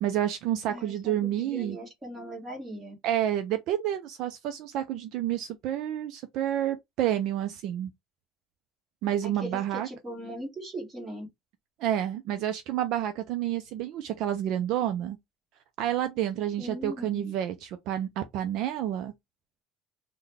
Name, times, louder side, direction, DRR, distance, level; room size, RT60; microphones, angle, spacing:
voice 1, 0.0-1.8 3.0-7.9 9.0-9.9 11.8-15.2 15.8-19.1, right 11 dB, 50° right, 0.4 m, -29 dB
voice 2, 0.7-2.9 9.2-11.3 16.6-17.3, right 1 dB, 15° right, 1.4 m, -39 dB
3.8 x 2.1 x 3.3 m
cardioid pair, 170°, 0 cm